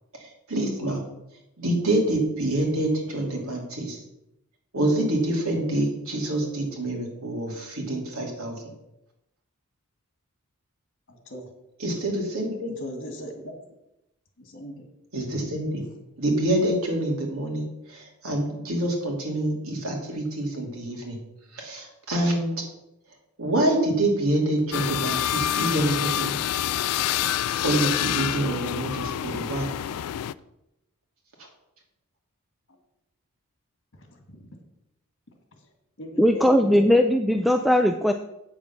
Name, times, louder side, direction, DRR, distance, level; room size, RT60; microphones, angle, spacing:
voice 1, 0.1-1.0 1.6-4.0 4.7-8.6 11.8-12.7 15.1-15.8 16.2-21.2 21.5-22.5 23.4-26.4 27.5-29.7 31.4-31.5, right 1 dB, 70° right, 0 dB, 2.8 m, -26 dB
voice 2, 11.1-11.5 12.8-13.6 14.4-14.9 32.7-32.8 33.9-34.5 35.5-35.7 36.0-36.9, equal, 55° left, 4 dB, 2.1 m, -40 dB
sound 1, 24.7-30.3, left 11 dB, 90° left, 0.4 m, -27 dB
voice 3, 36.2-38.1, equal, ahead, 5 dB, 0.4 m, -19 dB
8.6 x 7.4 x 6.0 m, 0.86 s
head